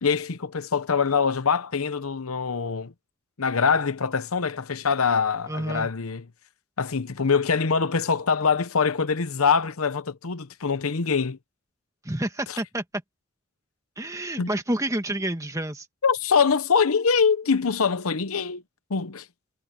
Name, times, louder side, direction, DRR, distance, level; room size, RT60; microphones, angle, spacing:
voice 1, 0.0-2.9 3.4-6.2 6.8-11.4 12.5-12.6 14.4-14.5 16.0-18.6 18.9-19.3, left 5 dB, 85° left, 0.9 m, -24 dB
voice 2, 5.5-5.9 12.0-12.8 14.0-15.8, right 1 dB, 15° right, 1.6 m, -29 dB
head